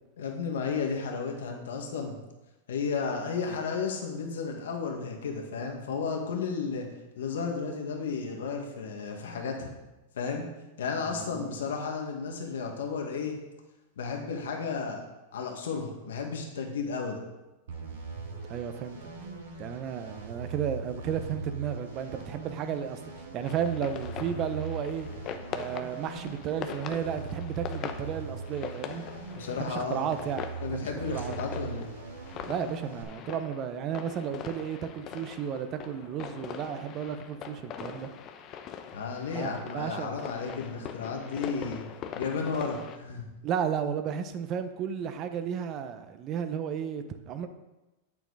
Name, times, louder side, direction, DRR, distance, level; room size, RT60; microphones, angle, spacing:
voice 1, 0.2-2.2 2.7-6.9 7.2-9.7 10.1-10.5 10.8-13.3 14.0-15.0 15.3-17.2 29.3-30.1 30.6-31.9 38.9-41.8 42.2-43.3, left 5 dB, 80° left, 2 dB, 1.8 m, -33 dB
voice 2, 11.1-11.6 18.5-19.0 19.6-25.1 25.5-29.0 29.6-31.4 32.5-38.1 39.3-40.1 43.4-47.5, right 8 dB, 40° right, 9 dB, 0.9 m, -33 dB
sound 1, 17.7-33.0, right 4 dB, 85° right, 2.3 m, -41 dB
sound 2, 23.4-43.0, left 8 dB, 40° left, 0.8 m, -42 dB
8.4 x 7.1 x 4.9 m, 1.0 s
hypercardioid pair, 125°, 0 cm